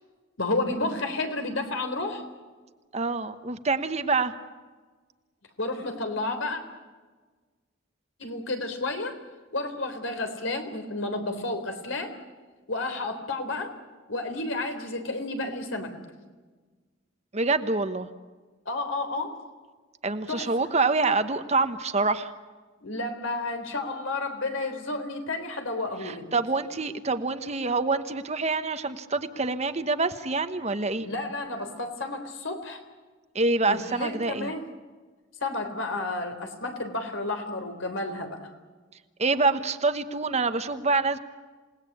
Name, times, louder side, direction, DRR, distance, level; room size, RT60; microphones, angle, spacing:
voice 1, 0.4-2.2 5.6-6.6 8.2-9.1 9.5-12.1 12.7-13.7 14.1-15.9 18.7-19.3 20.3-20.5 22.8-26.3 31.0-32.8 33.7-34.7 35.4-38.5, left 2 dB, 80° left, 6 dB, 3.7 m, -31 dB
voice 2, 2.9-4.3 17.3-18.1 20.0-22.3 26.0-31.1 33.3-34.5 39.2-41.2, right 3 dB, 35° right, 10 dB, 1.1 m, -26 dB
28.0 x 18.5 x 8.5 m, 1.4 s
head